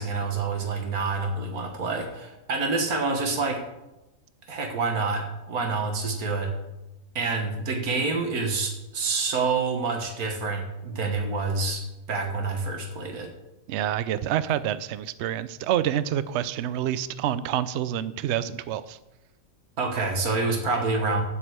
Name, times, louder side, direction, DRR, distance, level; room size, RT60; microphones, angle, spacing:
voice 1, 0.0-3.6 4.5-6.5 7.2-13.3 19.8-21.2, right 4 dB, 85° right, 3 dB, 1.9 m, -27 dB
voice 2, 13.7-19.0, right 11 dB, 65° right, 14 dB, 0.7 m, -27 dB
7.7 x 6.1 x 8.0 m, 0.97 s
omnidirectional pair, 1.5 m